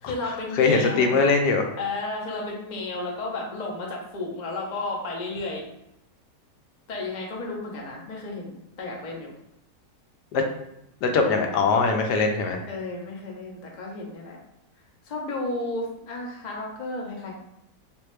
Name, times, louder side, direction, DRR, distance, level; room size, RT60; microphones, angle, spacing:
voice 1, 0.0-1.2 1.8-5.6 6.9-9.3 12.7-14.4 15.0-17.3, left 2 dB, 60° left, -2 dB, 0.4 m, -33 dB
voice 2, 0.6-1.6 10.3-10.4 11.0-12.6, left 4 dB, 75° left, 4 dB, 1.1 m, -21 dB
3.4 x 2.6 x 3.2 m, 0.82 s
omnidirectional pair, 1.9 m